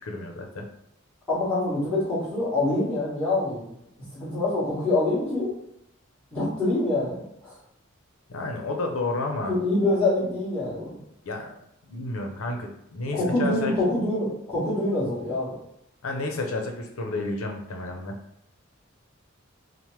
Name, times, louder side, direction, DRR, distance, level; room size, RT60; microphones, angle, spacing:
voice 1, 0.0-0.6 8.3-9.5 11.2-11.6 11.9-13.7 16.0-18.2, left 2 dB, 80° left, 2 dB, 0.6 m, -31 dB
voice 2, 1.3-3.6 4.1-5.5 6.3-7.6 9.5-11.0 13.1-15.6, left 2 dB, 5° left, -10 dB, 1.4 m, -25 dB
2.9 x 2.1 x 3.1 m, 0.76 s
head